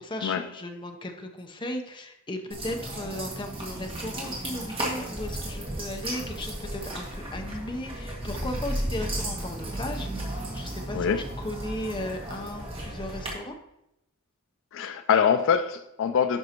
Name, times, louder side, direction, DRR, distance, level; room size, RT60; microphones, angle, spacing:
voice 1, 0.0-13.6, left 1 dB, 20° left, 4 dB, 0.7 m, -36 dB
sound 1, 2.5-13.3, right 1 dB, 25° right, 1.8 m, -34 dB
voice 2, 14.7-16.4, left 7 dB, 60° left, 9 dB, 0.4 m, -24 dB
10.5 x 5.3 x 2.9 m, 0.85 s
head